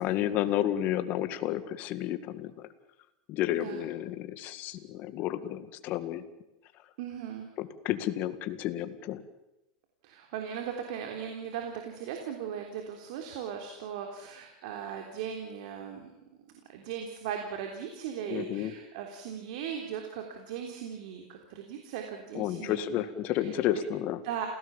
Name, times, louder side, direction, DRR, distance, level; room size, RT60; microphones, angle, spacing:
voice 1, 0.0-2.7 3.3-6.2 7.6-9.2 18.3-18.7 22.3-24.2, left 12 dB, 45° left, 10 dB, 2.0 m, -31 dB
voice 2, 7.0-7.5 10.0-16.1 16.7-23.5 24.2-24.5, right 8 dB, 70° right, 3 dB, 3.5 m, -38 dB
28.0 x 17.0 x 7.3 m, 0.95 s
supercardioid pair, 130°, 4 cm